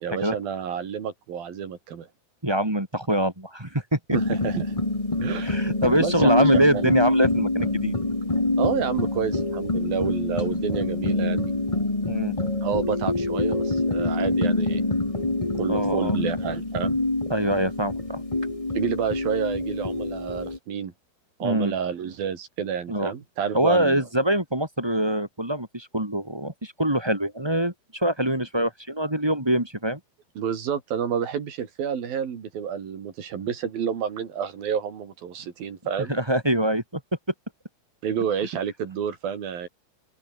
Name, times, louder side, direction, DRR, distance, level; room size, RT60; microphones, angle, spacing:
voice 1, 0.0-2.1 4.1-4.7 5.2-5.6 6.0-6.9 8.6-11.5 12.6-14.8 15.5-17.0 18.7-20.9 21.4-24.0 30.4-36.1 38.0-39.7, right 8 dB, 60° right, 4.4 m, -29 dB
voice 2, 2.4-4.2 5.4-7.9 12.1-12.3 15.7-16.2 17.3-18.2 21.4-21.7 22.9-23.1 23.5-30.0 36.1-37.0, right 1 dB, 10° right, 2.2 m, -24 dB
sound 1, 4.1-20.6, left 2 dB, 45° left, 0.4 m, -26 dB
open air
omnidirectional pair, 4.8 m